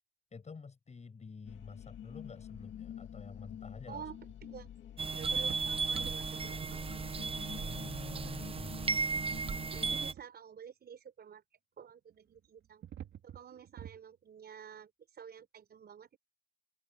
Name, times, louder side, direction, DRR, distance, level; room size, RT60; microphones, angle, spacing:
voice 1, 0.3-4.1 7.6-9.0, left 5 dB, 35° left, 6.3 m, -48 dB
sound 1, 1.4-10.0, left 10 dB, 70° left, 2.1 m, -48 dB
sound 2, 2.5-2.7 3.2-3.5 3.9-4.7 5.2-6.3 7.0-7.1 8.2-8.7 9.0-9.7 10.1-10.2 12.1-14.0, right 10 dB, 70° right, 3.3 m, -51 dB
voice 2, 3.9-4.7 5.1-6.8 8.1-8.3 9.7-11.4 11.8-12.8 13.2-16.2, right 8 dB, 55° right, 4.8 m, -50 dB
sound 3, 5.0-10.1, right 5 dB, 30° right, 0.6 m, -35 dB
cardioid pair, 90°, 20 cm